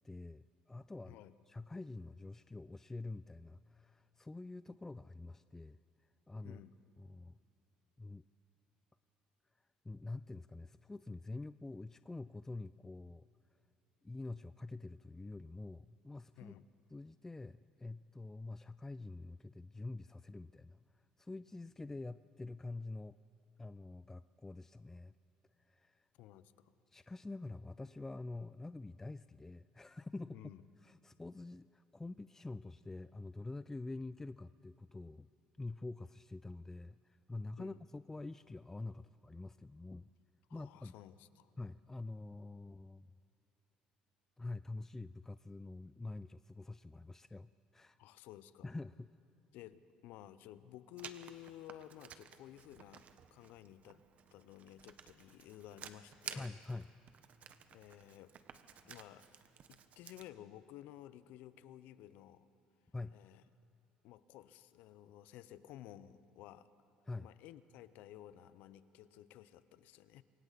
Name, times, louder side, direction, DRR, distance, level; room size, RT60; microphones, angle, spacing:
voice 1, 0.0-5.8 6.3-6.6 7.0-7.4 8.0-8.2 9.8-13.3 14.0-16.6 16.9-23.2 23.6-25.1 25.7-26.1 26.9-30.4 30.8-35.3 35.6-40.1 40.5-40.9 41.6-43.1 44.4-48.0 48.6-49.1 56.3-56.9 62.9-63.2 67.1-67.3, left 2 dB, 15° left, 15 dB, 0.4 m, -46 dB
voice 2, 6.4-6.8 16.4-16.7 26.2-26.7 30.3-30.6 37.6-37.8 40.5-41.5 48.0-48.7 49.5-54.0 54.3-56.5 57.7-58.3 58.9-59.3 59.7-62.5 63.1-63.4 64.0-66.7 67.2-70.2, left 12 dB, 75° left, 14 dB, 0.8 m, -54 dB
Writing, 51.0-60.3, right 8 dB, 55° right, 1.3 m, -54 dB
28.0 x 24.0 x 4.2 m, 2.8 s
supercardioid pair, 75°, 3 cm